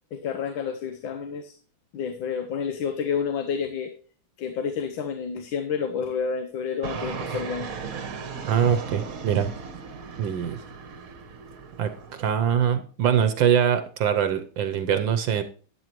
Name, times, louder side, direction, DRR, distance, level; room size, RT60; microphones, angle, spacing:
voice 1, 0.1-1.6 1.9-3.9 4.4-7.7, left 6 dB, 70° left, 8 dB, 1.6 m, -29 dB
Fixed-wing aircraft airplane, 6.8-12.2, right 6 dB, 50° right, 1.3 m, -37 dB
voice 2, 8.5-9.5 10.2-10.6 11.8-11.9 12.2-15.4, right 8 dB, 70° right, 10 dB, 1.4 m, -23 dB
12.5 x 9.0 x 3.1 m, 0.40 s
omnidirectional pair, 2.3 m